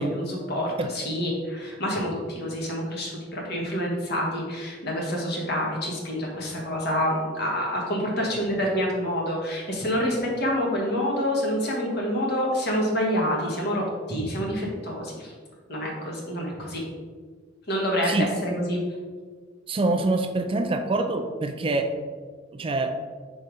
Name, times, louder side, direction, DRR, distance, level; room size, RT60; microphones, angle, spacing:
voice 1, 0.0-15.3 15.7-16.8 17.7-18.8, equal, 60° left, -2 dB, 1.6 m, -27 dB
voice 2, 19.7-21.9 22.5-22.9, right 2 dB, 30° right, 6 dB, 0.4 m, -25 dB
4.8 x 4.2 x 5.2 m, 1.5 s
head